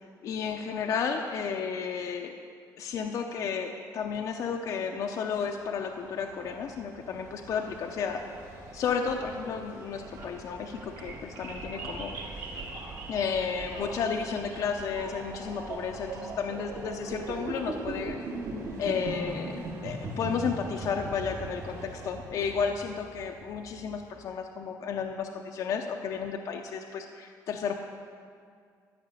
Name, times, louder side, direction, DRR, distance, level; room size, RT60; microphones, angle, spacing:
voice 1, 0.2-2.4 2.8-8.2 8.7-12.2 13.1-18.2 18.8-19.6 19.8-27.7, left 6 dB, 50° left, 3 dB, 0.6 m, -32 dB
sound 1, 5.3-22.1, right 2 dB, 50° right, 2.2 m, -47 dB
sound 2, 9.9-24.0, right 3 dB, 70° right, 2.3 m, -39 dB
13.5 x 6.0 x 8.2 m, 2.2 s
cardioid pair, 170°, 7 cm